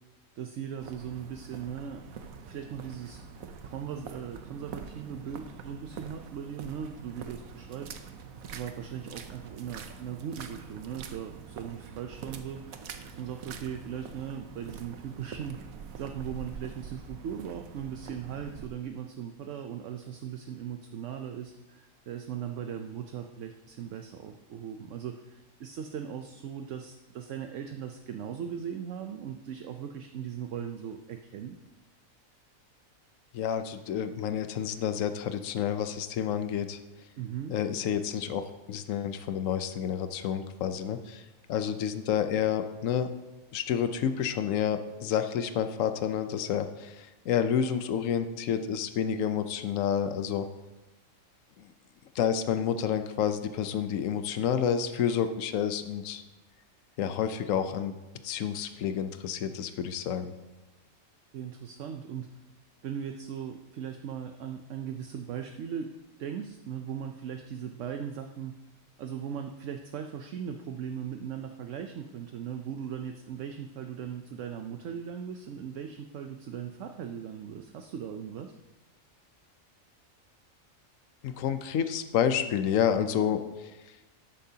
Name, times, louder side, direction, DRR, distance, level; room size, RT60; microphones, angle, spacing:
voice 1, 0.4-2.0 2.5-3.2 3.6-8.0 8.5-12.9 13.2-15.6 16.0-31.6 37.2-37.5 61.3-62.3 62.8-65.9 66.2-68.6 69.0-78.5, right 8 dB, 70° right, 5 dB, 1.0 m, -38 dB
sound 1, 0.8-18.7, right 6 dB, 90° right, 1.2 m, -45 dB
voice 2, 33.3-36.8 37.5-43.1 43.5-50.5 51.6-51.7 52.1-56.2 57.0-57.9 58.2-60.3 81.2-83.7, left 8 dB, 75° left, 9 dB, 1.1 m, -29 dB
13.0 x 10.5 x 2.8 m, 1.1 s
omnidirectional pair, 1.4 m